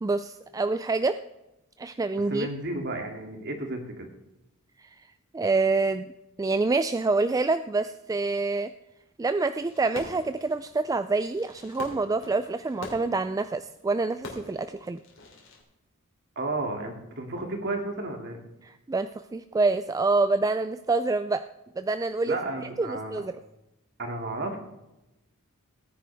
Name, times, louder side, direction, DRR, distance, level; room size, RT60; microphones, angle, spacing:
voice 1, 0.0-1.2 1.8-2.5 4.8-4.9 5.3-6.1 6.4-8.7 9.2-15.0 18.6-21.4 21.8-23.3, right 3 dB, 15° right, 10 dB, 0.3 m, -27 dB
voice 2, 2.3-4.1 16.4-18.4 22.3-23.2 24.0-24.6, right 2 dB, 55° right, 3 dB, 2.5 m, -32 dB
Fireworks, 9.6-15.6, left 2 dB, 65° left, 3.2 m, -45 dB
17.5 x 10.0 x 3.5 m, 0.93 s
head